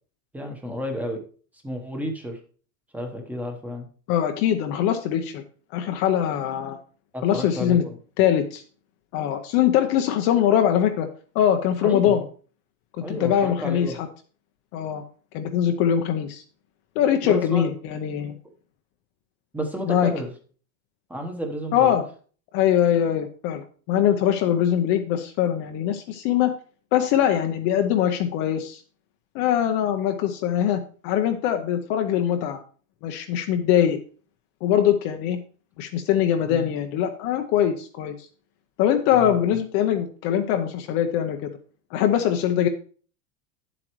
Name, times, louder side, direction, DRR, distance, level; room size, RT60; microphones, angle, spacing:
voice 1, 0.3-1.2 1.6-2.4 2.9-3.8 7.1-8.0 11.8-12.2 13.0-14.0 17.2-17.7 19.5-20.3 21.1-21.9 36.4-36.7 39.1-39.4, equal, 5° right, 3 dB, 1.0 m, -31 dB
voice 2, 4.1-5.4 5.7-6.8 7.2-7.8 8.2-8.6 9.1-11.1 11.3-12.2 13.1-14.1 14.7-15.0 15.3-16.4 17.0-18.4 19.9-20.1 21.7-22.0 22.5-26.5 26.9-28.8 29.3-32.6 33.0-34.0 34.6-35.4 35.8-38.3 38.8-41.5 41.9-42.7, left 10 dB, 35° left, 6 dB, 0.6 m, -22 dB
10.0 x 7.9 x 3.0 m, 0.40 s
supercardioid pair, 175°, 41 cm